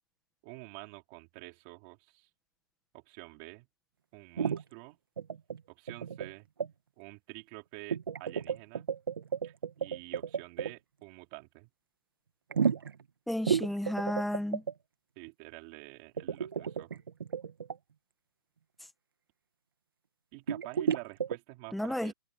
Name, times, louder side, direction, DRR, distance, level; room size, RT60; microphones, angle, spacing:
voice 1, 0.4-2.3 2.9-3.7 4.1-5.0 5.7-6.5 7.0-8.9 9.4-11.7 15.2-17.0 20.3-22.1, right 25 dB, 20° right, 4.0 m, -48 dB
sound 1, 4.4-4.6 5.2-5.6 5.9-6.3 6.6-6.7 7.9-10.7 12.5-13.0 13.5-14.7 16.2-17.7 20.5-21.4, right 7 dB, 70° right, 2.1 m, -32 dB
voice 2, 13.3-14.6 21.7-22.1, left 1 dB, ahead, 1.4 m, -32 dB
hypercardioid pair, 175°, 12 cm